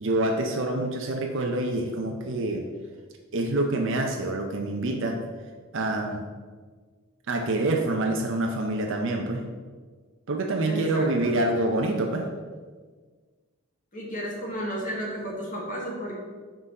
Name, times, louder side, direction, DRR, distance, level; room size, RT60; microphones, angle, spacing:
voice 1, 0.0-2.6 3.3-5.3 5.7-6.3 7.3-9.4 10.3-12.3, right 2 dB, 60° right, 2 dB, 0.6 m, -26 dB
voice 2, 10.6-11.3 13.9-16.1, equal, 35° left, -3 dB, 1.7 m, -33 dB
6.0 x 3.9 x 5.3 m, 1.5 s
head